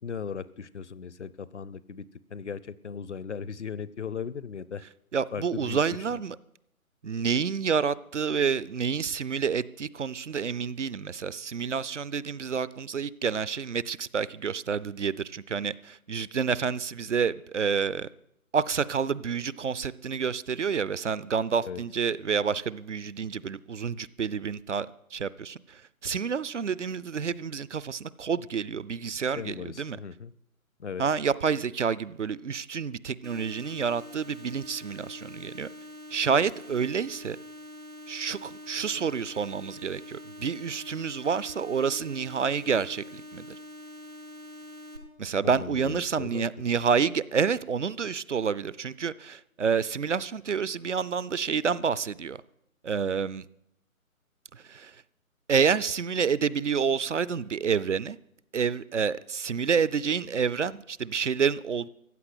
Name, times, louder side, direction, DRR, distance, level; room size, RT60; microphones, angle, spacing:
voice 1, 0.0-4.8 5.3-5.8 6.1-6.2 21.6-21.8 29.4-30.3 30.8-31.0 45.4-46.5, left 6 dB, 55° left, 0.7 m, -37 dB
voice 2, 5.1-6.4 7.0-18.1 18.5-30.0 31.0-35.7 36.1-37.4 38.1-43.6 45.2-52.4 52.8-53.5 54.5-55.0 55.5-58.2 58.5-61.9, right 6 dB, 55° right, 0.6 m, -29 dB
sound 1, 33.2-45.0, left 1 dB, 90° right, 6.1 m, -45 dB
15.5 x 9.3 x 7.9 m
figure-of-eight pair, 150°, 43 cm